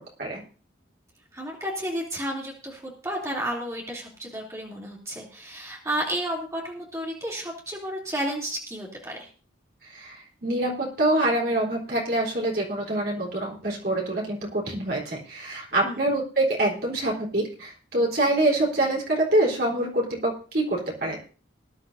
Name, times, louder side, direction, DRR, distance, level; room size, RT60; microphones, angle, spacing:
voice 1, 1.3-9.3 15.8-16.1, equal, 15° right, -3 dB, 3.1 m, -32 dB
voice 2, 9.9-21.2, right 1 dB, 55° right, -2 dB, 3.9 m, -25 dB
20.0 x 11.0 x 2.7 m, 0.37 s
head